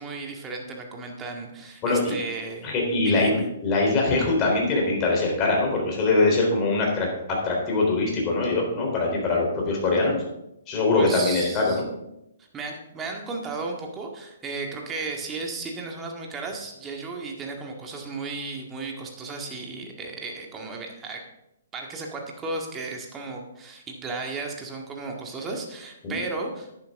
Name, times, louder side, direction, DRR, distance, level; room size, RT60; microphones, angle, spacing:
voice 1, 0.0-2.7 3.0-3.5 10.9-11.8 12.5-21.3 21.7-26.7, right 3 dB, 20° right, 1 dB, 1.9 m, -34 dB
voice 2, 1.8-2.1 2.6-10.2 10.7-11.8 26.0-26.2, left 3 dB, 30° left, 0 dB, 3.7 m, -23 dB
11.0 x 9.5 x 3.7 m, 0.86 s
hypercardioid pair, 135°, 0 cm